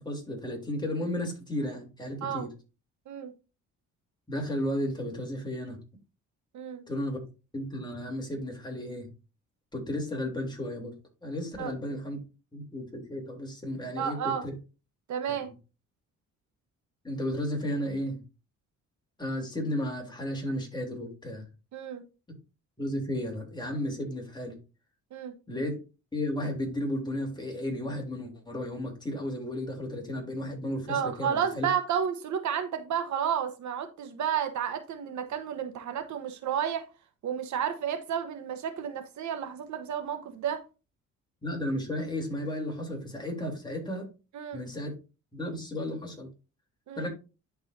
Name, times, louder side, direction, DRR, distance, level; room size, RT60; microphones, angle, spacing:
voice 1, 0.0-2.5 4.3-5.8 6.9-7.3 7.5-9.1 9.7-10.9 11.2-12.2 12.5-14.5 15.3-15.5 17.0-18.2 19.2-21.5 22.8-24.6 25.5-25.8 26.1-31.7 41.4-44.1 44.5-45.0 45.3-46.3 47.0-47.1, left 1 dB, 15° left, 3.2 m, -33 dB
voice 2, 14.0-14.5 15.1-15.5 21.7-22.0 25.1-25.3 30.9-36.8 37.2-40.6 44.3-44.6 46.9-47.1, right 8 dB, 70° right, 1.2 m, -31 dB
11.5 x 4.7 x 2.7 m
cardioid pair, 90°, 30 cm